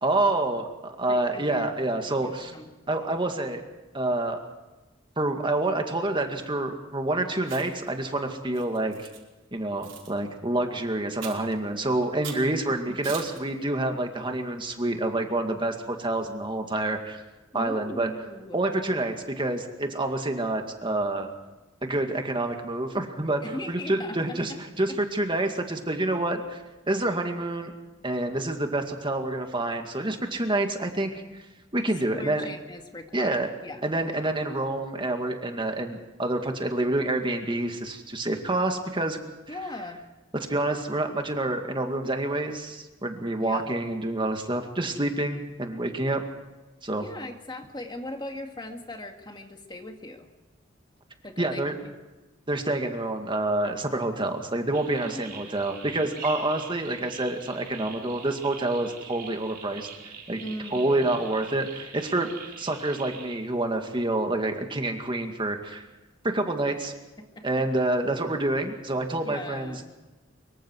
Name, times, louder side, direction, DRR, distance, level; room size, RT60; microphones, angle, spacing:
voice 1, 0.0-2.5 2.9-3.6 3.9-4.4 5.2-9.1 9.5-17.2 17.5-18.1 18.5-21.3 21.8-26.6 26.9-27.7 28.0-31.4 31.7-32.5 33.1-33.5 33.8-39.2 40.5-46.2 46.8-47.1 51.4-51.8 52.5-59.9 60.3-60.4 60.7-62.3 62.6-65.8 66.2-66.9 67.4-70.0, right 2 dB, 25° right, 4 dB, 2.1 m, -28 dB
voice 2, 1.1-2.7 12.9-13.0 17.5-18.6 23.4-24.6 24.9-25.0 32.1-33.8 39.5-40.0 43.4-43.7 47.0-50.3 51.2-51.9 55.0-55.6 60.4-61.2 67.2-67.7 69.2-69.9, left 1 dB, 25° left, 4 dB, 2.0 m, -39 dB
Chewing mastication, 7.4-7.9 8.5-9.2 9.8-10.1 11.2-11.5 12.2-12.5 13.0-13.4, right 7 dB, 75° right, 5.2 m, -40 dB
sound 1, 54.7-63.4, right 6 dB, 50° right, 3.7 m, -44 dB
25.0 x 23.5 x 4.7 m, 1.1 s
head